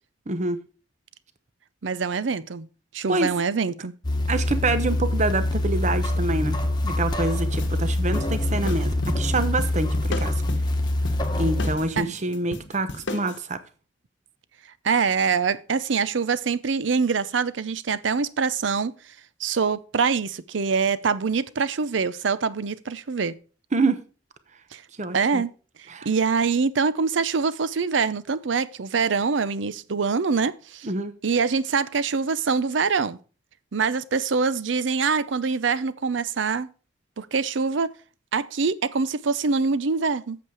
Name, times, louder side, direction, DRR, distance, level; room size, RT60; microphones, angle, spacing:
voice 1, 0.3-0.6 3.1-3.3 4.3-6.6 6.8-10.3 11.3-13.6 23.7-24.0 25.0-25.4 25.9-26.1 30.8-31.1, right 2 dB, 40° right, 0.8 m, -26 dB
voice 2, 1.8-2.7 2.9-3.9 12.0-12.1 14.8-18.9 19.4-23.4 24.7-24.8 25.1-25.5 26.0-30.9 31.2-33.2 33.7-36.7 37.2-37.9 38.3-40.4, right 5 dB, 75° right, 0.6 m, -24 dB
sound 1, 4.0-11.8, left 1 dB, 20° left, 1.2 m, -25 dB
sound 2, 7.5-13.4, left 2 dB, 75° left, 1.0 m, -35 dB
8.2 x 7.3 x 4.8 m
head